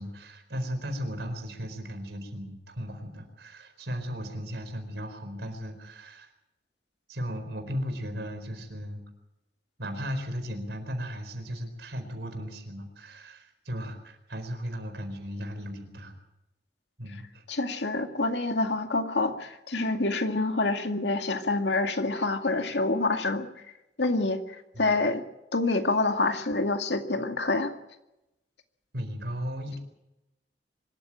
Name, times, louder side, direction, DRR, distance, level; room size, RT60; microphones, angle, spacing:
voice 1, 0.0-6.3 7.1-9.0 9.8-16.1 17.0-17.4 24.7-24.9 28.9-29.8, equal, 75° right, 7 dB, 4.5 m, -36 dB
voice 2, 17.5-23.5 24.0-25.2 25.5-27.7, left 2 dB, 80° left, 6 dB, 2.2 m, -27 dB
24.5 x 13.5 x 8.9 m, 0.92 s
head